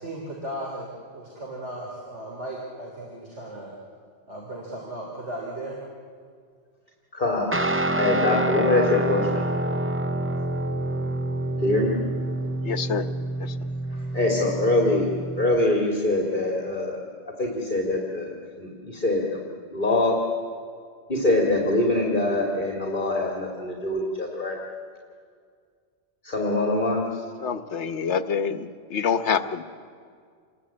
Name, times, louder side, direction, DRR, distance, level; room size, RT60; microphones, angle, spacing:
voice 1, 0.0-3.7 4.3-5.8, right 1 dB, 85° right, -2 dB, 3.7 m, -36 dB
voice 2, 7.1-7.5 8.0-9.4 11.6-11.9 13.9-15.1 15.4-17.1 17.4-19.4 19.7-20.2 21.1-24.6 26.2-27.1, left 2 dB, 45° left, 0 dB, 2.7 m, -24 dB
Guitar, 7.5-15.7, right 1 dB, 15° right, 0.5 m, -27 dB
voice 3, 12.6-13.1 13.4-13.5 27.4-29.6, left 6 dB, 75° left, 10 dB, 1.3 m, -26 dB
28.0 x 21.0 x 8.7 m, 2.1 s
omnidirectional pair, 1.2 m